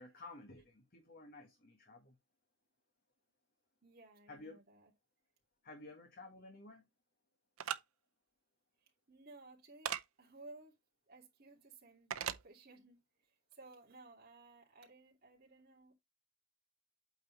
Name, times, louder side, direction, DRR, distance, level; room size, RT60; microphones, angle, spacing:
voice 1, 0.0-2.2 4.3-4.6 5.6-6.9, left 2 dB, 45° left, 1.6 m, -53 dB
voice 2, 3.8-4.9 5.8-5.9 8.8-10.8 11.1-12.1 12.4-15.9, right 2 dB, 45° right, 2.7 m, -58 dB
sound 1, 7.6-7.8 9.8-10.0 12.1-12.4, right 9 dB, 90° right, 0.7 m, -37 dB
8.5 x 4.1 x 4.0 m
head